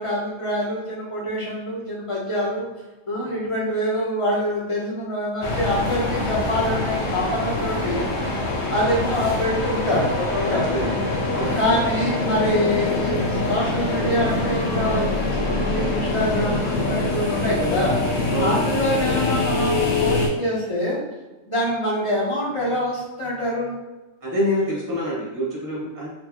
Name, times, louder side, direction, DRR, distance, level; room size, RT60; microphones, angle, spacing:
voice 1, 0.0-2.7 3.1-8.1 8.7-10.9 11.5-18.0 18.4-21.0 21.4-23.8, left 1 dB, 25° left, -6 dB, 1.0 m, -25 dB
sound 1, 5.4-20.3, left 2 dB, 80° left, 1.1 m, -24 dB
voice 2, 10.5-11.0 11.3-11.6 18.3-18.7 24.2-26.1, equal, 15° right, -5 dB, 1.0 m, -26 dB
4.1 x 2.3 x 3.0 m, 1.1 s
omnidirectional pair, 1.3 m